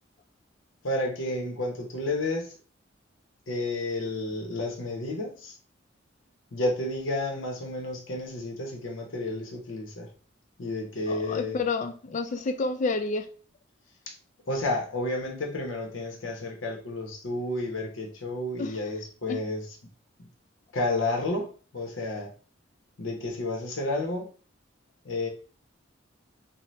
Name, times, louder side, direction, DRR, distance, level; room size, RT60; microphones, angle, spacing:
voice 1, 0.8-2.5 3.5-5.6 6.5-10.1 10.6-11.6 14.1-14.2 14.4-19.7 20.2-20.3 20.7-22.3 23.0-24.3 25.0-25.3, left 2 dB, 80° left, 2 dB, 0.8 m, -31 dB
voice 2, 11.1-13.3 18.6-18.7 19.3-19.4, left 3 dB, 40° left, 9 dB, 0.3 m, -29 dB
2.7 x 2.1 x 3.1 m, 0.39 s
head